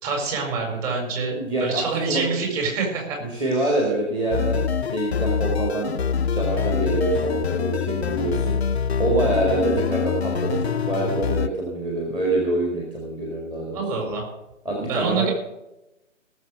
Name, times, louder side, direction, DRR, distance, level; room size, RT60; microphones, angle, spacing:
voice 1, 0.0-3.2 3.6-3.7 13.7-14.3 14.9-15.3, right 4 dB, 30° right, 1 dB, 4.6 m, -26 dB
voice 2, 1.4-2.3 3.2-6.0 6.3-8.6 9.0-14.0 14.7-15.3, right 2 dB, 10° right, -2 dB, 1.9 m, -25 dB
sound 1, 4.3-11.5, left 7 dB, 55° left, 0.7 m, -25 dB
17.5 x 7.2 x 6.4 m, 0.93 s
figure-of-eight pair, 130°, 39 cm